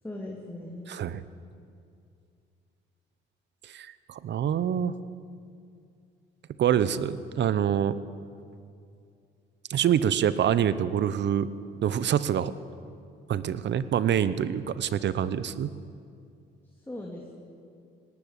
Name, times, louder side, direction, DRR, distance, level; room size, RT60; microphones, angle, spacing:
voice 1, 0.0-0.9 16.8-17.3, left 1 dB, 10° left, -1 dB, 2.8 m, -39 dB
voice 2, 0.9-1.2 3.6-5.0 6.6-8.0 9.7-11.5 11.8-12.5 13.3-15.7, right 9 dB, 65° right, 15 dB, 0.9 m, -26 dB
19.0 x 18.5 x 8.3 m, 2.4 s
cardioid pair, 90°, 20 cm